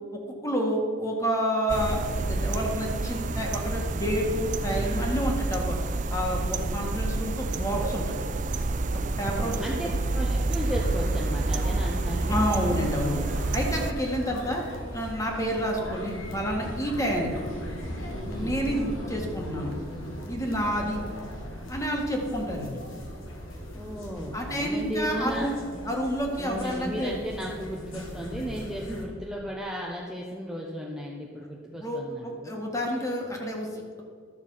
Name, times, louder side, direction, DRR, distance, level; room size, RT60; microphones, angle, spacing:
voice 1, 0.1-8.2 9.2-9.6 12.3-13.2 13.5-14.6 14.9-17.3 18.4-19.7 20.3-21.0 21.7-22.8 24.3-25.5 25.8-27.1 31.6-33.7, equal, 15° left, 0 dB, 1.7 m, -29 dB
sound 1, 1.7-13.9, right 2 dB, 40° right, 0.5 m, -28 dB
voice 2, 9.2-12.4 18.3-18.6 23.8-25.5 26.4-32.6, equal, 5° right, -3 dB, 0.9 m, -35 dB
sound 2, 10.7-29.0, equal, 85° left, 2.0 m, -38 dB
12.5 x 7.0 x 5.6 m, 2.1 s
head